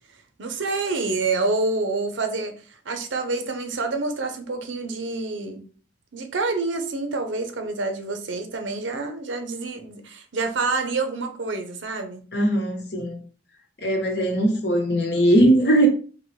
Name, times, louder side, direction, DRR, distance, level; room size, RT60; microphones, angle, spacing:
voice 1, 0.4-2.5 2.8-5.6 6.1-12.2, right 3 dB, 85° right, 0.8 m, -27 dB
voice 2, 12.3-13.2 13.8-15.9, right 1 dB, 60° left, 1.0 m, -20 dB
3.9 x 3.0 x 3.2 m
head